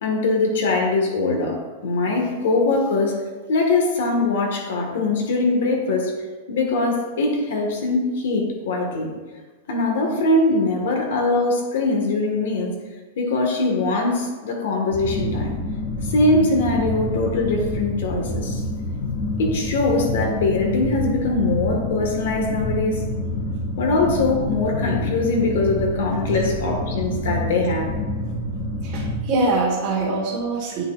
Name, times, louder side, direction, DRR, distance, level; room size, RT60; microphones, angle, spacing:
voice 1, 0.0-3.2 3.5-6.1 6.5-9.1 9.7-12.7 13.2-15.6 16.1-18.6 19.4-23.0 23.8-27.9, left 2 dB, 60° left, 1 dB, 1.3 m, -22 dB
sound 1, 14.9-29.2, left 1 dB, 35° left, 2.1 m, -27 dB
voice 2, 28.8-30.8, right 2 dB, 30° right, -6 dB, 1.0 m, -23 dB
9.7 x 6.2 x 2.3 m, 1.4 s
supercardioid pair, 180°, 0 cm